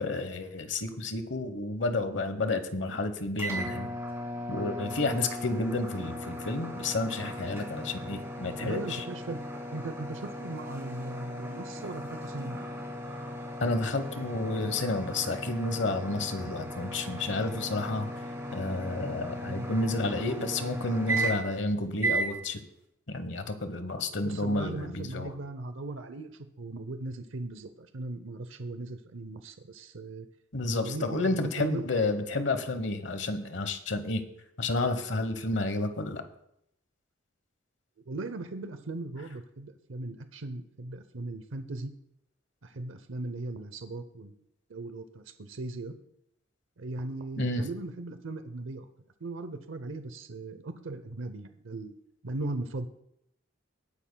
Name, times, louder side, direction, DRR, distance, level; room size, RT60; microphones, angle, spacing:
voice 1, 0.0-3.9 4.5-9.0 13.6-18.1 18.5-22.6 23.1-25.3 30.5-34.2 34.6-36.2 47.4-47.7, left 2 dB, 65° left, 9 dB, 1.1 m, -31 dB
sound 1, 3.4-21.6 22.0-22.3, right 1 dB, 15° right, 2.6 m, -36 dB
voice 2, 8.6-9.4 9.7-12.6 19.4-19.7 24.2-30.3 30.7-31.8 38.1-41.9 42.6-44.3 44.7-45.9 46.8-48.9 49.2-51.9 52.2-52.9, right 2 dB, 90° right, 9 dB, 0.7 m, -38 dB
19.0 x 10.0 x 2.3 m, 0.76 s
head